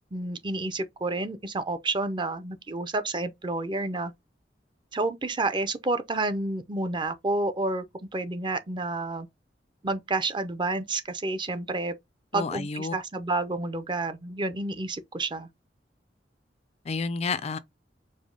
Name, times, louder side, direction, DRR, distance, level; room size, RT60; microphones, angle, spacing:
voice 1, 0.1-4.1 4.9-7.8 8.1-9.3 9.8-11.9 12.3-15.5, right 2 dB, 25° right, 0.6 m, -30 dB
voice 2, 12.3-12.9 16.9-17.6, left 4 dB, 35° left, 0.4 m, -30 dB
5.0 x 2.1 x 3.8 m
head